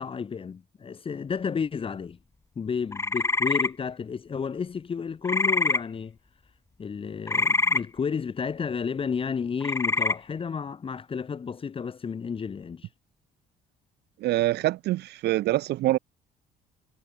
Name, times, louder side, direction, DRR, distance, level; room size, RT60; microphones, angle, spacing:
voice 1, 0.0-2.2 2.6-6.2 6.8-12.9, left 6 dB, 30° left, 2.0 m, -32 dB
sound 1, 2.9-3.7 5.2-5.8 7.3-7.8 9.6-10.1, left 3 dB, 15° left, 1.8 m, -24 dB
voice 2, 14.2-16.0, right 16 dB, 75° right, 4.0 m, -25 dB
cardioid pair, 110°, 17 cm